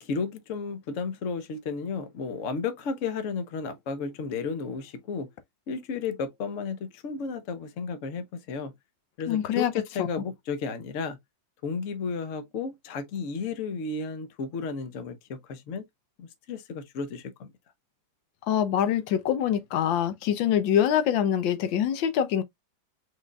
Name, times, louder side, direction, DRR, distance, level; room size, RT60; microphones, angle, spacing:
voice 1, 0.0-5.3 5.7-8.7 9.2-11.2 11.6-15.8 16.2-17.5, left 5 dB, 55° left, 0.9 m, -33 dB
voice 2, 9.3-9.7 10.0-10.1 18.5-22.4, left 9 dB, 85° left, 1.5 m, -24 dB
4.9 x 4.2 x 2.3 m
omnidirectional pair, 2.0 m